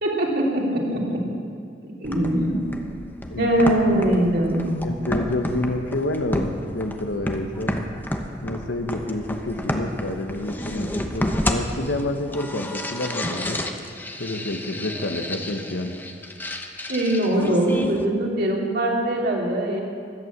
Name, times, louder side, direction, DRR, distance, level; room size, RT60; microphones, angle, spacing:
voice 1, 0.0-1.2 1.8-2.6 3.4-4.7 16.9-19.8, right 1 dB, 60° right, -2 dB, 3.2 m, -22 dB
sound 1, 2.0-18.0, left 1 dB, 10° left, 0.9 m, -31 dB
voice 2, 3.3-3.7 4.8-7.8 8.4-13.6 14.2-15.9, left 1 dB, 75° left, 6 dB, 1.3 m, -28 dB
16.0 x 11.0 x 7.4 m, 2.3 s
head